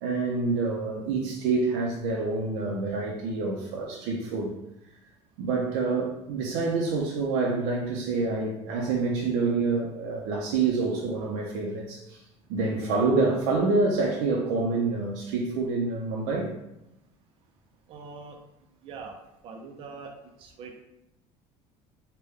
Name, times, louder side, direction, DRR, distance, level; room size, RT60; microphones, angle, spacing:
voice 1, 0.0-4.5 5.4-12.2 12.5-16.5, right 3 dB, 90° right, -2 dB, 0.5 m, -27 dB
voice 2, 17.9-18.4 18.8-19.1 19.4-20.1 20.4-20.7, right 4 dB, 40° right, 2 dB, 0.4 m, -42 dB
3.3 x 2.2 x 3.5 m, 0.87 s
cardioid pair, 135°, 14 cm